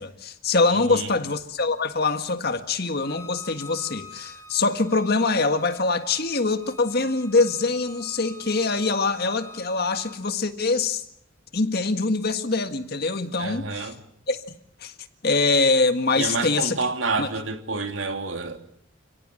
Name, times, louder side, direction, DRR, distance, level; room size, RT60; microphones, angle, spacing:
voice 1, 0.0-11.0 11.5-13.9 14.3-14.4 14.8-14.9 15.2-16.8 17.2-17.3, left 3 dB, 50° left, 1.8 m, -24 dB
voice 2, 0.7-1.1 13.4-14.0 16.2-18.6, right 3 dB, 75° right, 3.0 m, -29 dB
Bowed string instrument, 3.0-10.2, left 2 dB, 15° left, 2.3 m, -46 dB
29.5 x 17.5 x 7.8 m
head